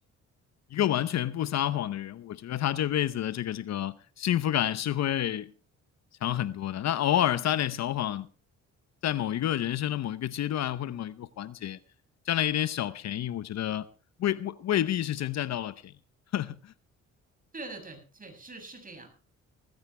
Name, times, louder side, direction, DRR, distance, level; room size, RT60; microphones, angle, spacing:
voice 1, 0.7-5.5 6.2-8.3 9.0-11.8 12.3-13.9 14.2-15.9 16.3-16.7, left 11 dB, 60° left, 0.8 m, -29 dB
voice 2, 17.5-19.1, right 3 dB, 30° right, 7.1 m, -43 dB
18.5 x 15.5 x 3.3 m
cardioid pair, 90°, 30 cm